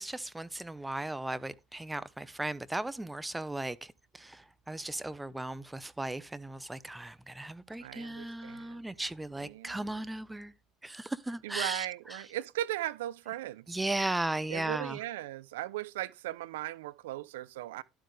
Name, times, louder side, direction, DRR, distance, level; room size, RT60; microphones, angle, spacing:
voice 1, 0.0-10.5 10.8-12.2 13.7-15.0, right 2 dB, 10° right, 1.0 m, -36 dB
voice 2, 7.8-8.8 9.4-9.9 11.4-13.8 14.5-17.8, right 14 dB, 90° right, 0.6 m, -38 dB
12.0 x 7.8 x 3.4 m
supercardioid pair, 85°, 0 cm